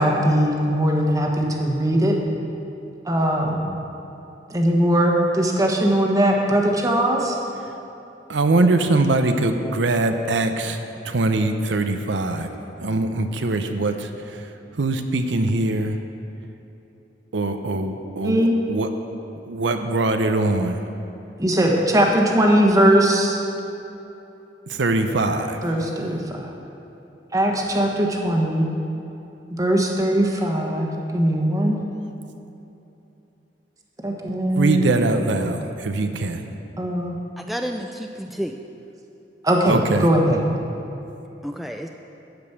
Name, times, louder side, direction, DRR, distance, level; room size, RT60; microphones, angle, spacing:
voice 1, 0.0-2.2 3.1-3.7 4.5-7.4 18.2-18.6 21.4-23.4 25.6-26.5 27.3-28.6 29.5-31.8 34.0-34.9 36.8-37.1 39.4-40.4, right 1 dB, 20° right, 0 dB, 1.3 m, -20 dB
voice 2, 8.3-12.5 12.8-16.0 17.3-18.9 19.4-20.8 24.7-25.9 34.5-36.4 39.7-40.1, right 2 dB, 85° right, 7 dB, 0.7 m, -22 dB
voice 3, 37.4-38.6 41.4-41.9, equal, ahead, 3 dB, 0.3 m, -30 dB
13.0 x 5.2 x 8.1 m, 2.9 s
head